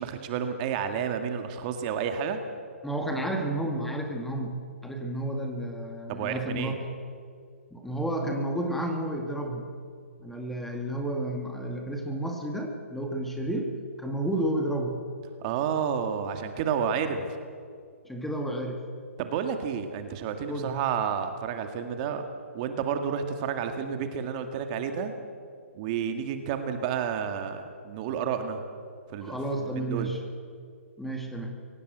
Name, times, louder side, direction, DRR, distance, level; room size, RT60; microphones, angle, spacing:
voice 1, 0.0-2.4 6.1-6.8 15.4-17.3 19.2-22.2 22.5-25.1 25.7-28.6 29.1-30.1, right 7 dB, 30° right, 7 dB, 2.0 m, -30 dB
voice 2, 2.8-6.8 7.7-9.7 10.2-13.7 14.0-15.0 18.0-18.8 20.5-20.8 29.2-30.2 31.0-31.6, right 1 dB, ahead, 3 dB, 1.9 m, -31 dB
24.0 x 17.5 x 8.0 m, 2.2 s
hypercardioid pair, 145°, 8 cm